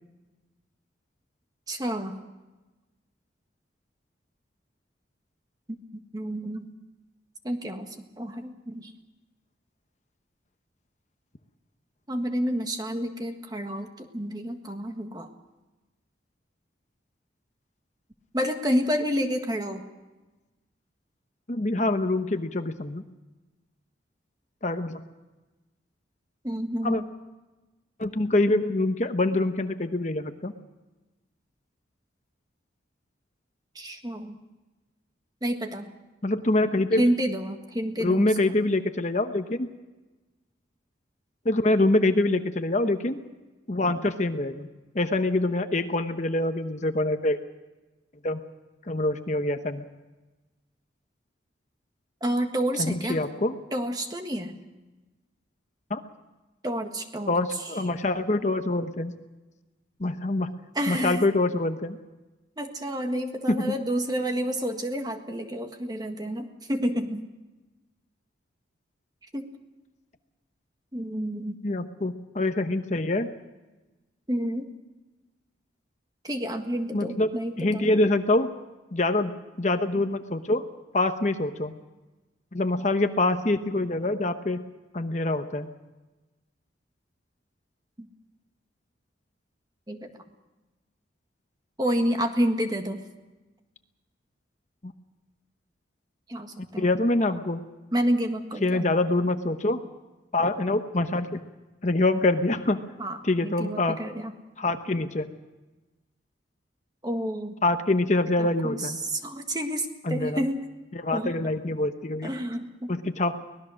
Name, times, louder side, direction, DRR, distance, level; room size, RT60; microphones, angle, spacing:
voice 1, 1.7-2.2 5.7-6.7 7.4-8.9 12.1-15.3 18.3-19.8 26.4-27.1 33.7-34.4 35.4-35.9 36.9-38.6 52.2-53.2 53.7-54.6 56.6-57.9 60.7-61.2 62.6-67.3 69.3-69.5 70.9-71.6 74.3-74.7 76.2-77.9 88.0-88.1 89.9-90.1 91.8-93.0 96.3-96.9 97.9-98.8 103.0-104.3 107.0-107.5 108.4-110.7 111.1-111.3 112.2-112.9, equal, 20° right, 5 dB, 1.6 m, -29 dB
voice 2, 21.5-23.0 24.6-25.0 26.8-27.0 28.0-30.5 36.2-37.0 38.0-39.7 41.4-43.2 43.7-44.7 44.9-47.4 48.2-48.4 48.9-49.8 52.8-53.5 55.9-56.0 57.3-59.1 60.0-60.5 60.9-62.0 63.5-63.7 71.6-73.3 76.9-77.3 77.6-78.5 78.9-79.3 79.6-80.6 80.9-81.7 82.5-84.6 84.9-85.7 96.8-97.6 98.6-99.8 100.3-101.4 101.8-102.8 103.2-104.0 104.6-105.3 107.6-109.0 110.1-110.4 110.9-112.3 112.9-113.5, left 2 dB, 40° left, 8 dB, 0.9 m, -25 dB
24.0 x 19.0 x 6.4 m, 1.1 s
head